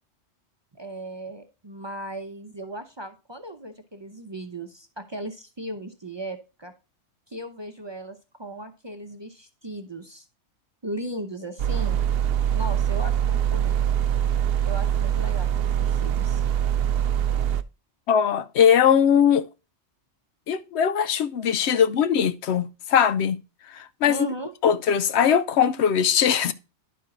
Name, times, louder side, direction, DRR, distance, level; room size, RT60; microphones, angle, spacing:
voice 1, 0.7-6.7 7.3-10.3 10.8-12.1 12.5-13.8 14.6-16.5 21.7-21.8 24.1-24.5, right 1 dB, 30° right, 0.6 m, -37 dB
sound 1, 11.6-17.6, right 10 dB, 65° right, 0.7 m, -23 dB
voice 2, 18.1-19.5 20.5-23.4 23.7-24.2 24.6-26.5, left 8 dB, 70° left, 0.8 m, -20 dB
11.0 x 4.6 x 3.7 m
omnidirectional pair, 1.2 m